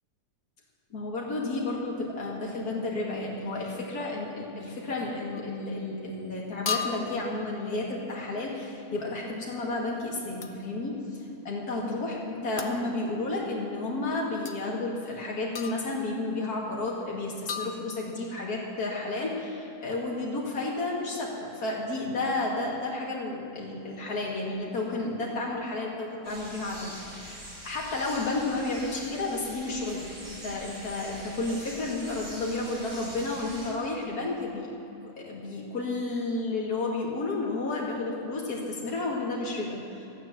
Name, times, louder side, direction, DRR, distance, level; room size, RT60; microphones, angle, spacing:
voice 1, 0.9-34.7 35.0-40.1, left 2 dB, 65° left, -3 dB, 2.7 m, -32 dB
sound 1, 5.3-5.6 6.7-7.3 10.4-10.6 12.6-12.8 14.5-14.6 15.5-16.1 17.5-18.3, left 6 dB, 50° left, 0.9 m, -35 dB
sound 2, 26.2-33.7, right 1 dB, 45° right, 4.3 m, -44 dB
14.0 x 9.4 x 7.4 m, 3.0 s
omnidirectional pair, 1.7 m